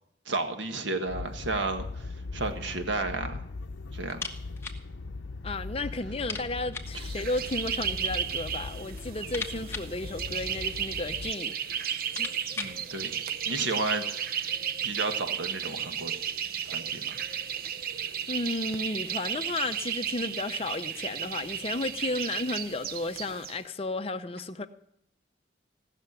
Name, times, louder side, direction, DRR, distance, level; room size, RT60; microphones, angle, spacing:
voice 1, 0.2-3.4 3.9-4.3 6.9-7.1 12.5-14.0 14.8-16.1 16.6-17.2, right 3 dB, 80° right, 1.5 m, -32 dB
sound 1, 1.1-11.3, left 3 dB, 75° left, 0.6 m, -40 dB
sound 2, 4.1-4.9 5.1-5.2 5.6-5.7 6.2-7.0 8.0-8.5 8.9-10.9 11.5-11.6 11.9-12.9, left 3 dB, 15° left, 1.3 m, -40 dB
voice 2, 5.4-11.9 12.2-12.3 18.3-24.7, left 2 dB, 30° left, 0.7 m, -33 dB
sound 3, 6.9-23.6, right 8 dB, 50° right, 0.7 m, -34 dB
17.0 x 6.8 x 9.7 m
head